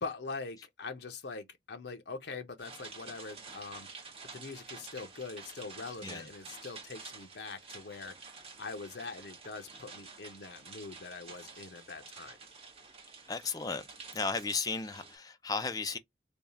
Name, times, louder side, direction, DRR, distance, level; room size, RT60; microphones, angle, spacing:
voice 1, 0.0-12.4, left 4 dB, 70° left, 0.7 m, -43 dB
sound 1, 2.6-15.2, right 4 dB, 35° right, 1.0 m, -50 dB
voice 2, 13.3-13.9 14.1-16.0, left 4 dB, 20° left, 0.4 m, -34 dB
3.4 x 2.3 x 4.0 m
head